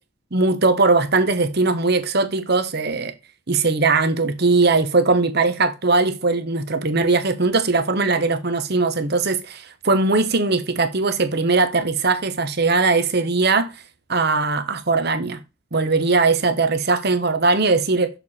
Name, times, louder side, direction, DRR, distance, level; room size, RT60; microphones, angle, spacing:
voice 1, 0.3-3.1 3.5-13.7 14.1-15.4 15.7-18.1, right 3 dB, 50° right, 0.9 m, -20 dB
6.7 x 4.6 x 4.2 m
head